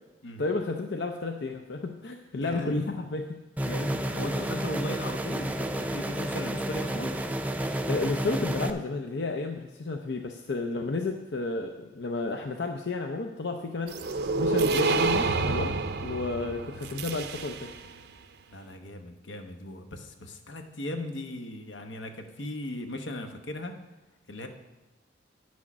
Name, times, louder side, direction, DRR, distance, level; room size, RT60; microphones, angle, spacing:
voice 1, 0.4-3.4 7.9-14.0 14.4-15.7 16.0-17.7, left 3 dB, 70° left, 4 dB, 0.6 m, -32 dB
voice 2, 2.4-2.9 3.7-7.1 18.5-23.7 24.3-24.5, left 1 dB, 85° left, 5 dB, 1.0 m, -37 dB
sound 1, 3.6-8.7, right 1 dB, 10° right, 0.4 m, -31 dB
sound 2, 13.9-17.9, right 3 dB, 60° right, 0.5 m, -28 dB
9.7 x 6.3 x 6.0 m, 1.1 s
head